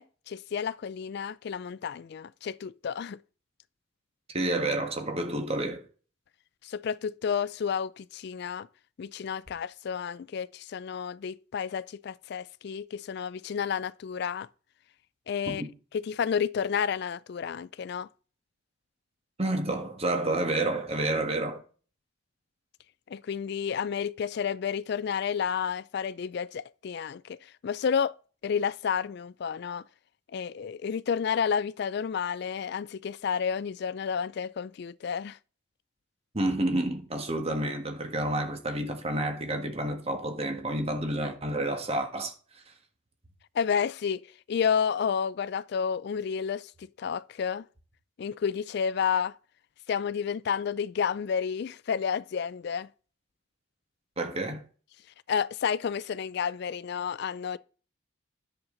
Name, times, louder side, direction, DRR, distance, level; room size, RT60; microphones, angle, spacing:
voice 1, 0.0-3.2 6.6-8.7 9.0-14.5 15.3-15.6 15.9-18.1 23.1-27.4 27.6-28.1 28.4-29.8 30.3-35.4 43.5-47.6 48.2-49.3 49.9-52.9 55.3-57.6, left 7 dB, 55° left, 0.3 m, -31 dB
voice 2, 4.3-5.9 15.5-15.7 19.4-21.6 36.3-42.3 54.2-54.6, right 1 dB, 30° right, 1.6 m, -29 dB
10.5 x 7.2 x 3.9 m
head